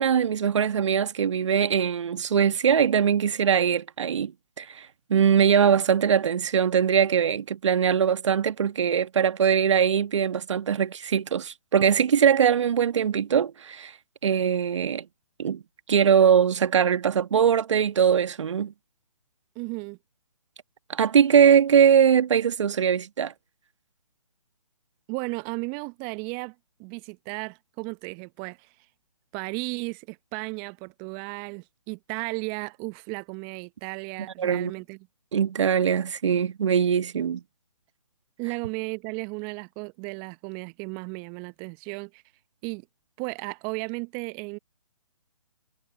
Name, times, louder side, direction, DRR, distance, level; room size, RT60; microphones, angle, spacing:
voice 1, 0.0-4.3 4.6-13.9 14.2-15.0 15.4-15.6 15.9-18.7 20.9-23.3 34.4-34.7 35.3-37.4, right 8 dB, 50° right, 1.6 m, -21 dB
voice 2, 19.6-20.0 25.1-28.7 29.3-35.0 38.4-42.2 42.6-42.9 43.2-44.6, right 32 dB, 15° right, 0.7 m, -35 dB
figure-of-eight pair, 140°, 20 cm